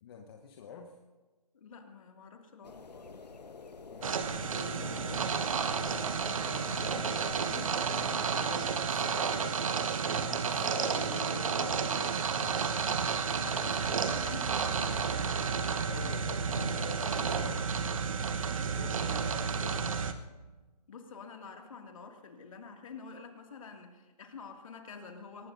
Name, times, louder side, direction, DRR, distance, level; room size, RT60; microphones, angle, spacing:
voice 1, 0.0-1.0 3.9-5.2 6.9-7.1 7.8-9.6 10.4-12.6 15.9-17.7 18.7-19.9, left 5 dB, 35° left, 3 dB, 1.1 m, -46 dB
voice 2, 1.5-3.2 5.9-7.1 7.5-8.0 13.3-15.3 18.8-18.9 20.9-25.5, left 5 dB, 55° left, 3 dB, 2.4 m, -48 dB
sound 1, 2.6-7.8, left 4 dB, 80° left, 1.1 m, -46 dB
sound 2, 4.0-20.1, right 6 dB, 55° right, 1.1 m, -31 dB
23.0 x 19.0 x 2.7 m, 1.2 s
figure-of-eight pair, 145°, 21 cm